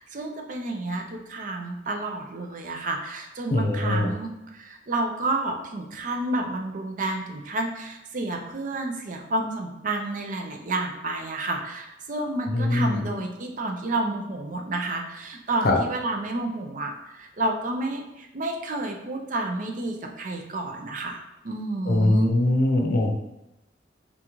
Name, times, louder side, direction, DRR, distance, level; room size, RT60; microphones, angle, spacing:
voice 1, 0.0-22.3, right 2 dB, 45° right, 3 dB, 0.5 m, -30 dB
voice 2, 3.5-4.1 12.5-13.0 15.6-15.8 21.9-23.2, left 1 dB, 55° left, 2 dB, 0.6 m, -22 dB
3.7 x 3.7 x 3.0 m, 0.93 s
head